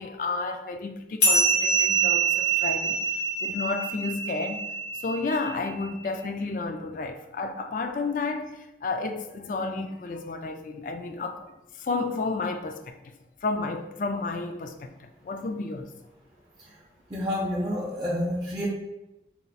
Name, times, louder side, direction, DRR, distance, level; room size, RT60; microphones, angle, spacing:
voice 1, 0.0-3.0 3.4-4.7 5.0-13.0 13.4-14.9 15.2-15.9, left 3 dB, 50° left, 0.3 m, -31 dB
sound 1, 1.2-6.1, right 4 dB, 75° left, 0.9 m, -26 dB
voice 2, 17.1-18.7, left 1 dB, 20° right, 0.5 m, -29 dB
4.2 x 2.3 x 3.9 m
head